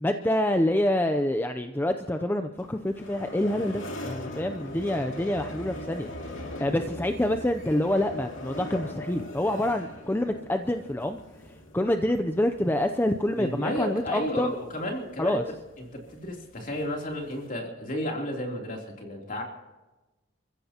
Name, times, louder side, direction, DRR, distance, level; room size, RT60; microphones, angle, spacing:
voice 1, 0.0-6.1 6.6-11.2 11.7-14.5 15.2-15.4, left 1 dB, 10° left, 7 dB, 0.5 m, -27 dB
sound 1, 2.6-17.5, left 1 dB, 80° left, 2.5 m, -41 dB
voice 2, 13.4-15.4 15.8-19.4, left 1 dB, 45° left, 0 dB, 3.1 m, -32 dB
30.0 x 15.0 x 2.9 m, 1.1 s
head